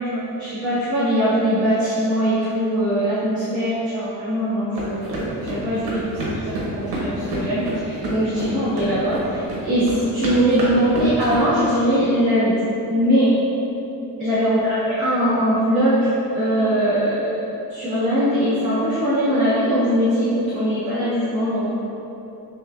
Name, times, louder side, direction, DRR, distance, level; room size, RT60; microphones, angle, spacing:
voice 1, 0.0-12.5 12.9-13.4 14.2-17.3 17.7-21.7, equal, 20° right, -17 dB, 1.2 m, -21 dB
sound 1, 4.7-11.4, right 1 dB, 85° right, 1.1 m, -28 dB
6.2 x 2.5 x 2.3 m, 3.0 s
cardioid pair, 180°, 37 cm